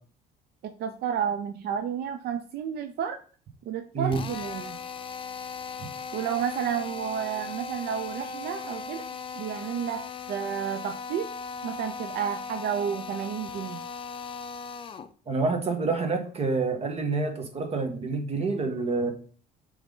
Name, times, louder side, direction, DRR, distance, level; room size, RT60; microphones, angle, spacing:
voice 1, 0.6-3.2 3.7-4.8 6.1-9.1 9.3-11.3 11.6-13.8, right 8 dB, 70° right, 7 dB, 0.6 m, -31 dB
Drill, 4.1-15.1, left 5 dB, 30° left, 0.5 m, -38 dB
voice 2, 15.3-19.1, right 3 dB, 40° right, 5 dB, 1.5 m, -27 dB
7.1 x 3.6 x 3.8 m, 0.41 s
cardioid pair, 110°, 17 cm